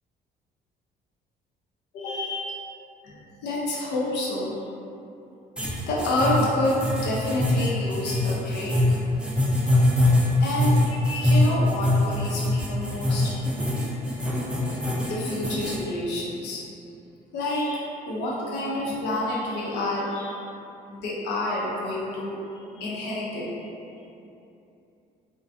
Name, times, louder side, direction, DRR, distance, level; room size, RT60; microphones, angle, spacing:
voice 1, 1.9-2.8 3.0-4.6 5.9-9.0 10.4-13.5 14.2-14.3 15.0-16.8 17.3-20.4 20.9-22.4 22.7-23.6, left 1 dB, 85° left, -6 dB, 0.6 m, -29 dB
sound 1, 5.6-15.8, left 1 dB, 5° right, 0.3 m, -23 dB
2.5 x 2.2 x 2.5 m, 2.8 s
cardioid pair, 110°, 17 cm